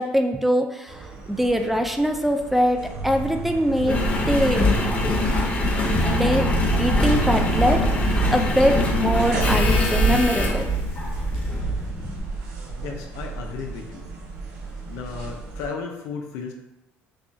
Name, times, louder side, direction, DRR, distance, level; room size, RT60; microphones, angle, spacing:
voice 1, 0.0-4.7 6.0-6.5 6.8-7.9 8.2-10.7 11.6-12.3, equal, 5° right, 5 dB, 0.3 m, -23 dB
sound 1, 0.9-15.7, right 5 dB, 80° right, 0.8 m, -29 dB
Engine, 3.9-11.7 12.4-12.5, left 2 dB, 30° left, 0.8 m, -23 dB
Bass guitar, 5.9-12.2, left 2 dB, 25° right, 1.4 m, -32 dB
voice 2, 12.8-14.1 14.9-16.5, left 5 dB, 80° left, 3 dB, 0.6 m, -34 dB
4.8 x 2.3 x 2.6 m, 0.93 s
cardioid pair, 100°, 5 cm